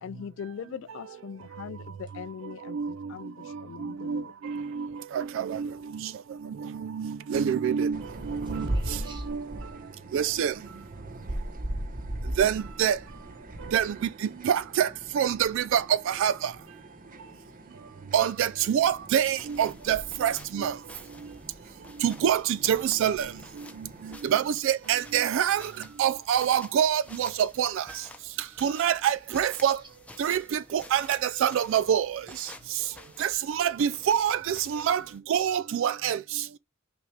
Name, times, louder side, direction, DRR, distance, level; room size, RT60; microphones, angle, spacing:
voice 1, 0.0-4.3, left 7 dB, 65° left, 0.3 m, -41 dB
voice 2, 3.8-5.7 6.0-6.1 6.6-8.0 8.3-9.0 9.3-9.4 10.1-10.5 12.4-13.0 13.7-13.9 14.4-14.9 15.1-16.5 18.1-20.7 22.0-23.3 24.2-25.7 26.0-27.8 28.6-29.8 30.2-32.5 33.2-35.0 35.3-36.6, right 9 dB, 65° right, 0.3 m, -26 dB
sound 1, 7.9-24.2, right 1 dB, 40° right, 0.9 m, -39 dB
voice 3, 8.4-9.3 17.6-17.7 29.8-29.9 32.5-33.2, right 3 dB, 20° right, 1.5 m, -53 dB
sound 2, 19.2-35.2, left 1 dB, 5° left, 0.7 m, -50 dB
5.9 x 3.3 x 4.9 m
head